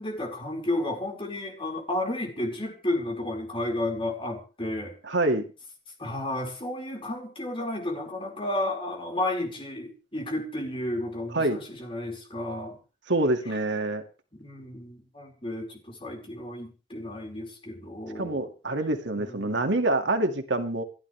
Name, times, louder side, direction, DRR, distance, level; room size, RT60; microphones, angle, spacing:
voice 1, 0.0-4.9 6.0-12.8 14.3-18.5 19.1-19.7, left 1 dB, 30° left, 1 dB, 5.2 m, -32 dB
voice 2, 5.0-5.5 11.3-11.6 13.1-14.0 18.2-20.8, right 2 dB, 80° right, 5 dB, 2.2 m, -26 dB
30.0 x 11.0 x 3.4 m, 0.35 s
head